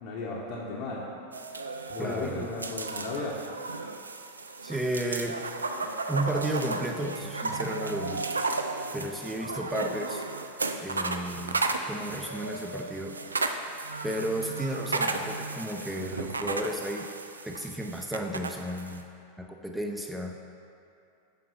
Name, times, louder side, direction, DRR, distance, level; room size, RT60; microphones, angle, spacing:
voice 1, 0.0-1.1 1.9-3.4, left 3 dB, 55° left, -5 dB, 1.0 m, -35 dB
sound 1, 1.3-19.0, right 3 dB, 90° right, 0.4 m, -34 dB
voice 2, 2.0-2.5 4.6-5.4 6.1-8.2 8.9-10.3 10.8-13.2 14.0-17.1 17.4-19.0 19.4-20.4, right 1 dB, 5° right, 2 dB, 0.6 m, -33 dB
5.9 x 4.8 x 5.4 m, 2.6 s
hypercardioid pair, 95°, 0 cm